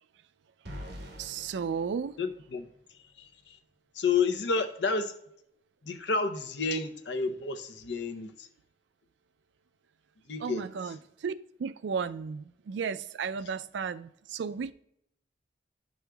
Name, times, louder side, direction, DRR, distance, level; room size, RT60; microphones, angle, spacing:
sound 1, 0.7-2.8, equal, 65° right, 1.2 m, -45 dB
voice 1, 1.2-2.1 10.4-11.3 11.6-14.7, right 6 dB, 85° right, 0.3 m, -34 dB
voice 2, 2.2-2.7 3.2-3.6 4.0-5.1 5.8-8.5 10.3-10.7, left 4 dB, 80° left, 0.7 m, -30 dB
10.5 x 6.2 x 2.3 m
head